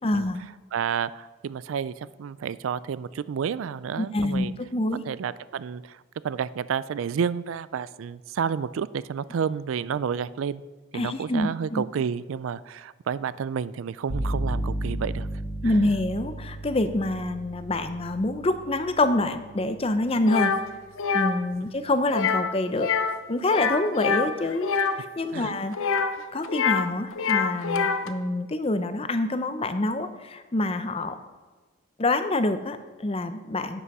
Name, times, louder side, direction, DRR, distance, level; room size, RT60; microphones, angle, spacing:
voice 1, 0.0-0.4 4.0-5.0 10.9-11.8 15.6-20.5 21.1-22.9 23.3-25.9 26.3-31.2 32.0-33.8, left 2 dB, 30° left, 10 dB, 0.6 m, -26 dB
voice 2, 0.7-4.5 5.0-10.6 10.9-15.3 15.6-15.8 25.3-25.6, right 7 dB, 75° right, 17 dB, 0.3 m, -30 dB
sound 1, 14.1-21.8, right 1 dB, 5° left, 1.9 m, -35 dB
sound 2, 20.3-20.6 21.0-21.3 22.1-22.5 22.8-23.2 23.4-25.0 25.7-26.9 27.1-28.1, left 6 dB, 80° left, 0.7 m, -25 dB
11.0 x 8.3 x 4.8 m, 1.3 s
head